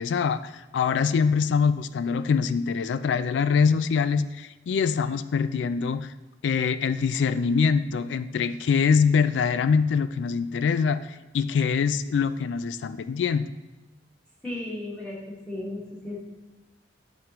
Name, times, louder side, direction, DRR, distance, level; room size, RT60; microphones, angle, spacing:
voice 1, 0.0-6.1 6.4-13.5, left 6 dB, 80° left, 13 dB, 0.3 m, -24 dB
voice 2, 14.4-15.2 15.5-16.2, left 1 dB, 5° left, -6 dB, 1.6 m, -34 dB
8.7 x 5.1 x 3.0 m, 1.1 s
head